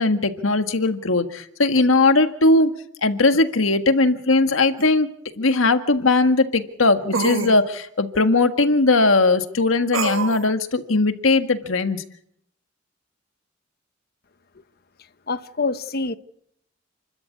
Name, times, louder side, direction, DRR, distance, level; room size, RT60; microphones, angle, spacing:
voice 1, 0.0-2.7 3.0-5.1 5.4-12.0, left 3 dB, 90° left, 1.6 m, -19 dB
sound 1, 4.8-4.9 7.1-7.5 9.9-10.5, right 4 dB, 80° right, 1.5 m, -25 dB
voice 2, 15.3-16.2, left 3 dB, 50° left, 1.1 m, -26 dB
29.0 x 13.0 x 8.5 m
head